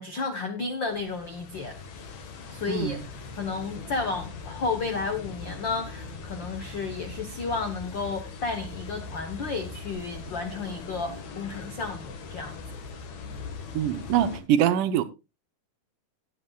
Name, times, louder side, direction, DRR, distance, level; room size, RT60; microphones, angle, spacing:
voice 1, 0.0-1.8 2.5-3.0 3.4-12.6, left 4 dB, 85° left, 1.0 m, -32 dB
sound 1, 0.9-14.4, left 4 dB, 60° left, 2.7 m, -40 dB
voice 2, 2.7-3.0 13.7-15.0, right 10 dB, 75° right, 2.2 m, -24 dB
17.5 x 8.7 x 2.3 m
omnidirectional pair, 3.9 m